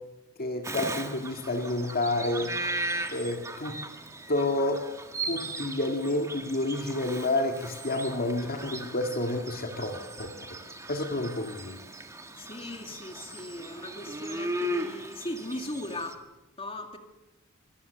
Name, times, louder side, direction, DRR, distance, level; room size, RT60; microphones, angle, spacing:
voice 1, 0.4-2.6 3.1-3.8 4.3-4.9 5.3-10.3 10.9-11.8, left 2 dB, 45° left, 4 dB, 1.9 m, -29 dB
Bird vocalization bird call bird song, 0.6-16.1, right 1 dB, 15° right, 1.7 m, -37 dB
voice 2, 12.4-16.2 16.6-17.0, left 1 dB, 25° left, 5 dB, 2.2 m, -38 dB
25.0 x 19.0 x 6.7 m, 1.0 s
head